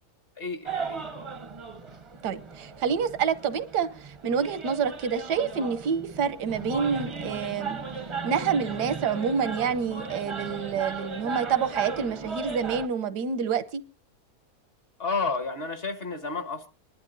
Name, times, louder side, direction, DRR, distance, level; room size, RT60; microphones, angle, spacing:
voice 1, 0.4-1.1 15.0-16.7, left 4 dB, 40° left, 1.3 m, -31 dB
sound 1, 0.6-12.9, right 4 dB, 30° right, 0.6 m, -36 dB
voice 2, 2.2-7.8 8.2-13.8, right 7 dB, 85° right, 1.4 m, -28 dB
26.5 x 11.0 x 2.6 m
omnidirectional pair, 1.7 m